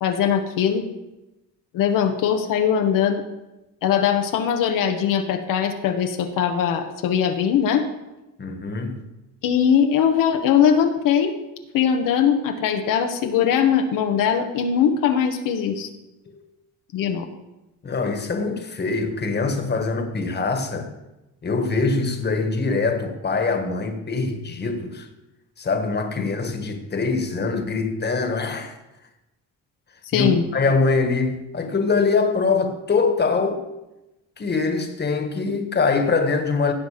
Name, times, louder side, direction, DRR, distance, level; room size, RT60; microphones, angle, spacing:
voice 1, 0.0-0.9 1.7-3.2 3.8-7.8 9.4-11.3 11.7-15.9 16.9-17.3 26.2-26.3 30.1-30.4, left 8 dB, 90° left, 1.1 m, -20 dB
voice 2, 8.4-9.0 16.3-16.4 17.8-20.9 21.4-25.1 25.6-28.7 30.1-33.6 34.4-36.7, left 4 dB, 30° left, 1.5 m, -23 dB
16.5 x 6.0 x 5.0 m
cardioid pair, 105°, 32 cm